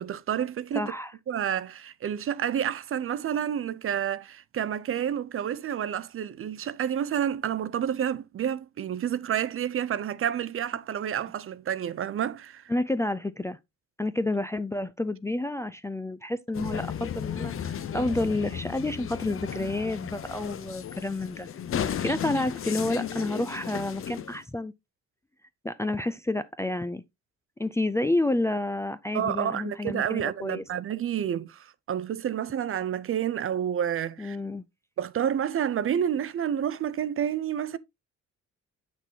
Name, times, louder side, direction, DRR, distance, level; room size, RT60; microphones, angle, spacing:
voice 1, 0.0-0.9 1.3-12.6 29.1-34.4 35.0-37.8, right 9 dB, 45° right, 0.5 m, -29 dB
voice 2, 0.7-1.1 12.7-13.6 14.0-21.5 21.7-24.7 25.6-27.0 27.6-30.6 34.2-34.7, left 2 dB, 10° left, 0.4 m, -30 dB
sound 1, 16.5-24.4, left 9 dB, 45° left, 0.7 m, -34 dB
7.3 x 6.1 x 2.8 m
cardioid pair, 90°, 30 cm